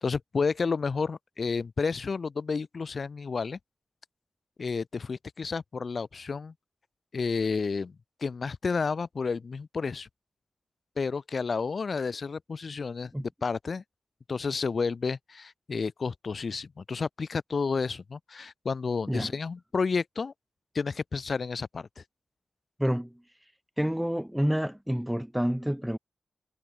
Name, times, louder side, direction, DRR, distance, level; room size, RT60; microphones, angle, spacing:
voice 1, 0.0-3.6 4.6-6.5 7.1-8.0 8.2-10.1 11.0-13.8 14.3-20.3 20.7-21.9, left 4 dB, 50° left, 0.8 m, -31 dB
voice 2, 22.8-23.1 23.8-26.0, equal, 5° right, 0.3 m, -28 dB
cardioid pair, 90°, 0 cm